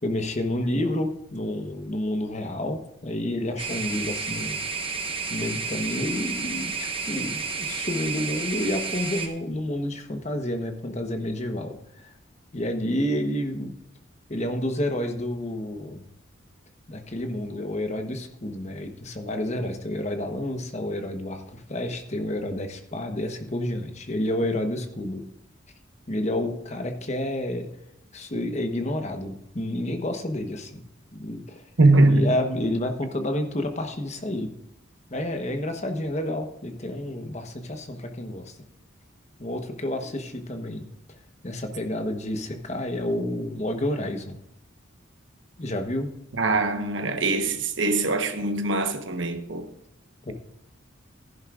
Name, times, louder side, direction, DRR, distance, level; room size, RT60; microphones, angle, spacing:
voice 1, 0.0-4.6 5.3-12.1 12.5-13.7 14.3-16.0 16.9-25.2 26.1-27.7 28.1-31.6 32.1-34.5 35.1-38.6 39.4-40.9 41.4-44.4 45.6-46.1 50.2-50.3, left 1 dB, 35° left, 1.1 m, -29 dB
sound 1, 3.6-9.3, right 5 dB, 25° right, 1.1 m, -31 dB
voice 2, 31.8-32.3 46.4-49.6, right 2 dB, 65° right, 1.2 m, -22 dB
15.0 x 10.5 x 2.5 m
head